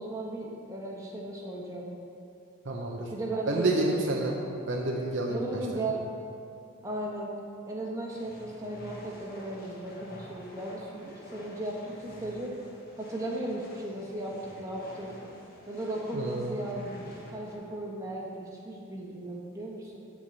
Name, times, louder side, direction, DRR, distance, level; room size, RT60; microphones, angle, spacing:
voice 1, 0.0-1.9 3.1-4.1 5.3-6.0 6.8-7.3 7.7-12.5 13.0-15.1 15.7-20.0, right 1 dB, 15° right, -3 dB, 1.2 m, -36 dB
voice 2, 2.6-3.1 3.5-4.4 4.7-5.9 16.1-16.6, right 2 dB, 60° right, -1 dB, 0.8 m, -29 dB
sound 1, 8.1-17.5, equal, 45° left, 1.5 m, -49 dB
8.4 x 4.8 x 7.5 m, 2.5 s
head